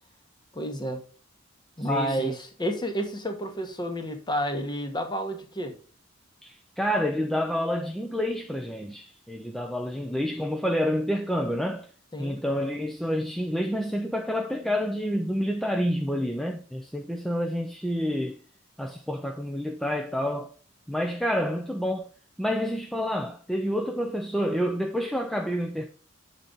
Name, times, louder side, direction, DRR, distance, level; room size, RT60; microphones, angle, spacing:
voice 1, 0.5-1.0 1.8-5.7 12.1-12.4, equal, 20° left, 1.1 m, -30 dB
voice 2, 1.8-2.3 6.4-11.9 12.2-18.4 18.8-20.5 20.9-22.1 22.4-25.8, equal, ahead, 0.5 m, -28 dB
7.4 x 3.9 x 3.8 m
head